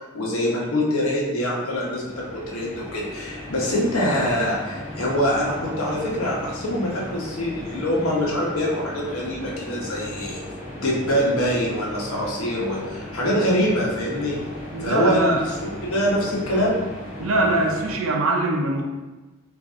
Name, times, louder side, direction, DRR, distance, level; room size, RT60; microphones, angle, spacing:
voice 1, 0.0-10.4 10.7-14.4 14.8-15.6 15.8-16.8, equal, 80° left, -3 dB, 1.0 m, -24 dB
sound 1, 1.4-18.0, left 1 dB, 30° left, 1.1 m, -37 dB
voice 2, 14.7-15.4 17.2-18.8, right 2 dB, 70° right, 1 dB, 0.6 m, -22 dB
4.0 x 2.6 x 3.6 m, 1.2 s
head